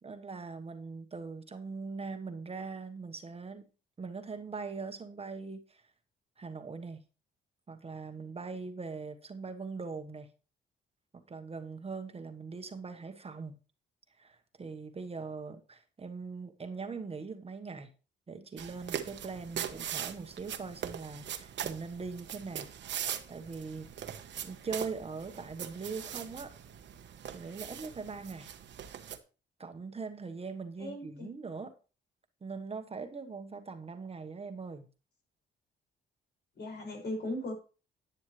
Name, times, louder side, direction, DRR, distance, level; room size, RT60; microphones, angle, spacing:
voice 1, 0.0-3.6 4.0-5.9 6.4-7.0 7.7-10.3 11.1-13.6 14.2-17.9 18.3-22.7 23.0-23.9 24.4-26.5 27.3-28.5 29.6-31.7 32.4-34.9, right 4 dB, 30° right, 1.2 m, -41 dB
sound 1, 18.6-29.2, right 9 dB, 65° right, 1.1 m, -41 dB
voice 2, 30.8-31.3 36.6-37.5, left 1 dB, 60° left, 5.6 m, -37 dB
11.0 x 9.1 x 3.2 m
cardioid pair, 90°, 20 cm